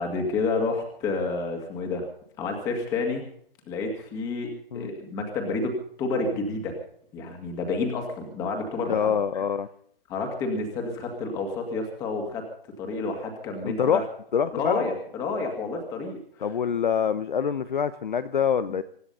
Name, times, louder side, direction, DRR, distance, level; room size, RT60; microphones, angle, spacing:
voice 1, 0.0-2.1 2.4-3.2 3.7-6.7 7.1-9.5 10.1-12.4 12.8-14.1 14.5-16.2, left 3 dB, 10° left, 3 dB, 2.2 m, -29 dB
voice 2, 8.9-9.7 13.6-14.0 14.3-14.9 16.4-18.8, left 7 dB, 55° left, 13 dB, 0.9 m, -25 dB
25.0 x 10.0 x 5.6 m, 0.64 s
hypercardioid pair, 165°, 29 cm